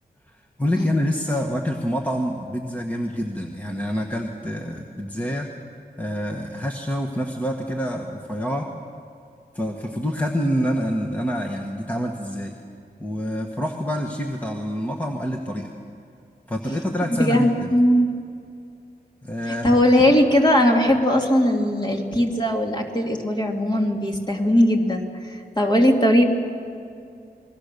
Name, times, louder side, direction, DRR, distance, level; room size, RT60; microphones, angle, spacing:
voice 1, 0.3-5.5 6.0-8.7 9.5-12.5 13.0-15.7 16.5-17.7 19.2-19.8, equal, 10° left, 1 dB, 1.5 m, -27 dB
voice 2, 17.2-18.1 19.5-26.2, equal, 25° left, 1 dB, 2.6 m, -19 dB
27.5 x 21.0 x 6.8 m, 2.4 s
wide cardioid pair, 130°, 17 cm